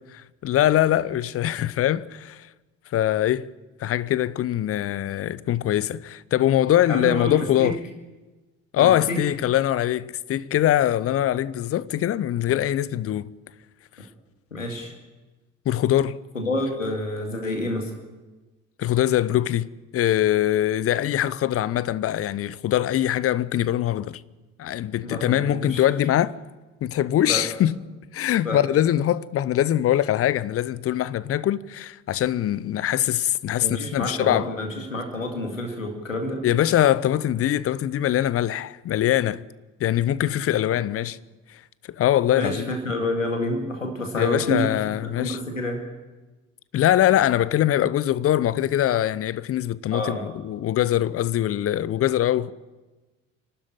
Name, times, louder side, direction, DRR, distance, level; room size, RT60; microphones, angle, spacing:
voice 1, 0.1-2.5 2.9-3.5 3.8-7.8 8.7-13.3 15.7-16.2 18.8-24.2 24.6-26.4 26.8-27.8 28.1-34.5 36.4-39.5 39.8-41.2 41.5-41.6 41.9-42.7 44.1-45.4 46.7-52.5, left 12 dB, 35° left, 0.8 m, -23 dB
voice 2, 6.9-7.7 8.8-9.2 14.5-14.9 16.3-17.9 25.0-25.8 27.2-27.4 28.4-28.6 33.6-36.8 40.4-40.8 42.4-45.8 49.9-50.2, left 1 dB, 85° left, 2.2 m, -29 dB
26.5 x 12.5 x 8.8 m
figure-of-eight pair, 55°, 38 cm